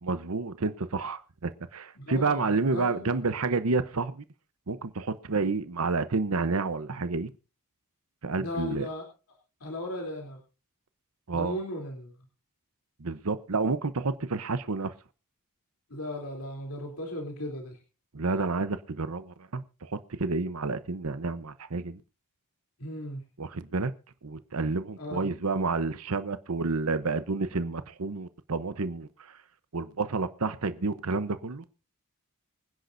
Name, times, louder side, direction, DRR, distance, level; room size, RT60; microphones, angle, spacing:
voice 1, 0.0-4.2 4.7-7.3 8.2-8.9 11.3-11.6 13.0-14.9 18.1-22.0 23.4-23.9 24.2-29.1 29.7-31.6, right 3 dB, 70° right, 0.9 m, -30 dB
voice 2, 2.0-3.2 5.4-5.5 8.3-9.0 9.6-10.4 11.3-12.1 15.9-17.8 22.8-23.2 25.0-25.3, left 1 dB, 80° left, 3.3 m, -37 dB
25.0 x 10.5 x 2.6 m
head